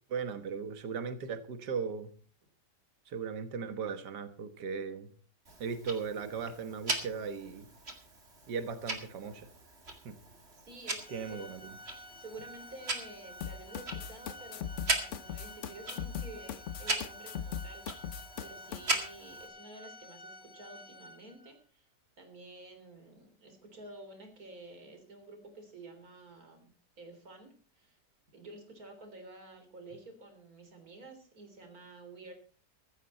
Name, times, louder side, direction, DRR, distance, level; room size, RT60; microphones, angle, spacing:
voice 1, 0.1-2.1 3.1-5.1 5.6-7.7 8.5-9.5 10.1-10.2 11.1-11.7, right 5 dB, 80° right, 10 dB, 1.9 m, -37 dB
Tick-tock, 5.5-19.5, right 2 dB, 40° right, 2.4 m, -40 dB
voice 2, 10.6-11.5 12.2-17.8 18.4-21.9 22.2-26.7 27.0-28.0 28.3-32.3, right 2 dB, 60° right, 6 dB, 3.9 m, -51 dB
Organ, 11.0-21.6, left 1 dB, 15° left, 1.1 m, -51 dB
sound 1, 13.4-18.8, left 8 dB, 55° left, 0.9 m, -39 dB
15.0 x 14.0 x 4.3 m, 0.41 s
omnidirectional pair, 1.8 m